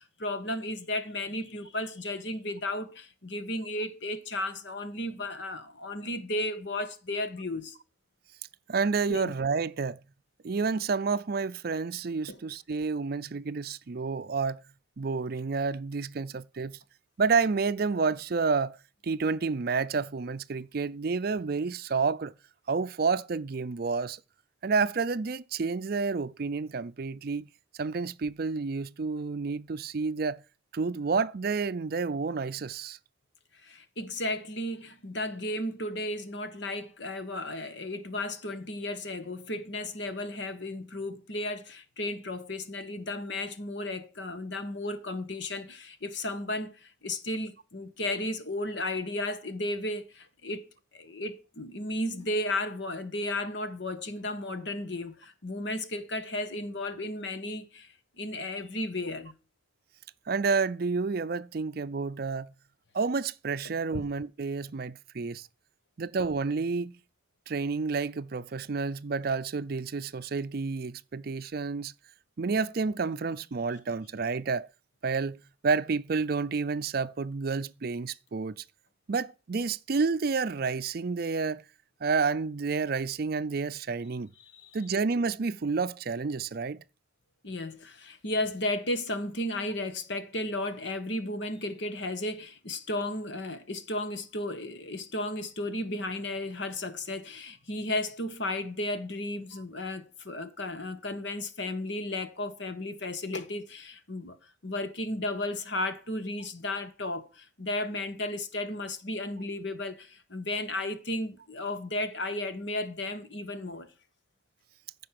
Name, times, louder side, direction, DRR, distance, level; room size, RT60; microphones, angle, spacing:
voice 1, 0.0-7.8 9.1-9.3 12.3-12.4 33.6-50.7 50.9-57.9 58.2-59.3 63.6-64.0 84.4-84.8 87.4-104.4 104.6-113.9, left 1 dB, 60° left, 1.4 m, -34 dB
voice 2, 8.7-10.0 10.4-14.6 15.0-16.8 17.2-18.8 19.0-22.3 22.7-24.2 24.6-27.5 27.8-30.4 30.7-33.0 60.3-62.5 62.9-65.5 66.0-66.9 67.5-71.9 72.4-74.7 75.0-75.4 75.6-78.6 79.1-81.6 82.0-84.3 84.7-86.8, right 4 dB, 50° right, 0.5 m, -30 dB
14.5 x 5.4 x 5.9 m
head